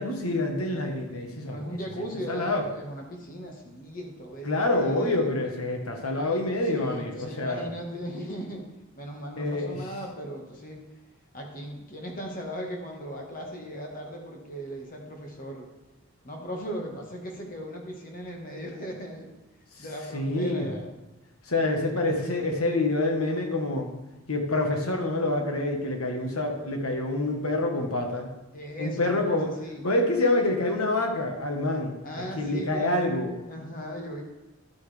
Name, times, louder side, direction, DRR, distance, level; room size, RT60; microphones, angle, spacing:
voice 1, 0.0-1.6 2.3-2.7 4.4-7.7 9.4-9.8 19.8-19.9 20.1-20.7 21.5-23.9 24.3-28.3 28.8-29.5 29.8-32.0 32.4-33.3, left 2 dB, 85° left, 3 dB, 1.6 m, -27 dB
voice 2, 1.4-5.3 6.6-8.7 8.9-10.8 11.3-15.7 16.2-19.3 19.8-20.9 28.5-29.8 32.0-33.0 33.4-34.2, equal, 40° left, 1 dB, 1.7 m, -38 dB
11.5 x 8.3 x 3.5 m, 1.0 s
head